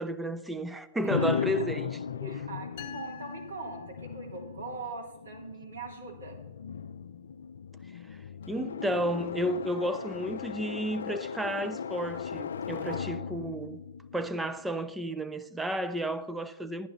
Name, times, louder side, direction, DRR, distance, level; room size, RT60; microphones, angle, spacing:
voice 1, 0.0-2.4 8.5-13.8 14.1-16.9, right 1 dB, 5° right, 0.6 m, -32 dB
sound 1, 1.0-14.9, left 7 dB, 75° left, 0.5 m, -37 dB
voice 2, 2.2-6.4 12.8-13.3, right 3 dB, 85° right, 2.9 m, -42 dB
sound 2, 2.8-4.5, left 10 dB, 50° left, 1.0 m, -48 dB
11.0 x 11.0 x 4.0 m
hypercardioid pair, 115°, 0 cm